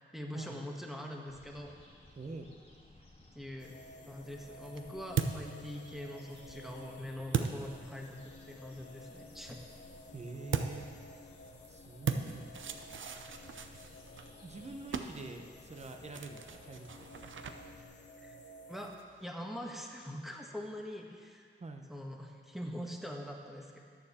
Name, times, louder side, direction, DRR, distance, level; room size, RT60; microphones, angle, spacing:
voice 1, 0.1-1.7 3.3-3.8 4.1-8.2 8.5-9.6 18.2-18.3 18.7-21.5 21.9-23.8, equal, ahead, 0 dB, 1.4 m, -43 dB
sound 1, 1.3-17.8, left 1 dB, 30° left, 1.8 m, -59 dB
voice 2, 2.2-2.5 5.7-5.8 10.1-10.9 11.7-12.6 14.4-16.9 17.1-17.3 21.6-21.8, right 3 dB, 35° right, 4 dB, 1.0 m, -46 dB
sound 2, 3.6-18.9, left 3 dB, 60° left, 0.8 m, -54 dB
sound 3, 4.0-8.4 10.5-19.3, right 6 dB, 70° right, 0.7 m, -40 dB
13.5 x 9.3 x 4.3 m, 2.1 s
wide cardioid pair, 95°, 21 cm